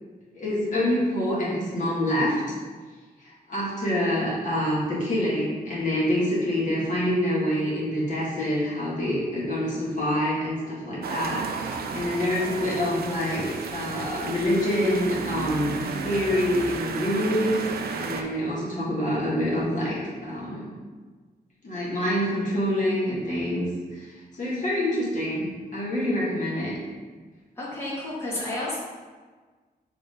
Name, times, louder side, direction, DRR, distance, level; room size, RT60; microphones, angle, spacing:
voice 1, 0.3-2.4 3.2-20.7 21.6-26.8, left 1 dB, 50° left, -7 dB, 1.4 m, -26 dB
sound 1, 11.0-18.2, right 5 dB, 75° right, 0.4 m, -33 dB
voice 2, 27.6-28.8, left 1 dB, 15° left, -9 dB, 1.1 m, -31 dB
6.0 x 2.6 x 3.3 m, 1.4 s
wide cardioid pair, 130°, 16 cm